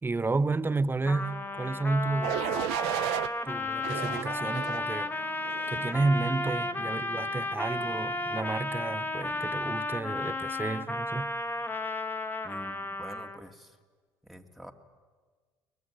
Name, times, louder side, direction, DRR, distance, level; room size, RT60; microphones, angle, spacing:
voice 1, 0.0-2.5 3.4-5.3 5.7-11.3, right 3 dB, 20° right, 0.9 m, -31 dB
Trumpet, 1.1-13.5, left 2 dB, 20° left, 1.7 m, -33 dB
sound 1, 2.2-3.3 3.8-4.9 5.4-5.8, right 18 dB, 80° right, 0.7 m, -33 dB
sound 2, 4.4-9.7, left 1 dB, 35° left, 4.1 m, -53 dB
voice 2, 12.4-13.8 14.3-14.7, equal, ahead, 2.4 m, -46 dB
23.0 x 20.5 x 9.9 m
supercardioid pair, 75°, 11 cm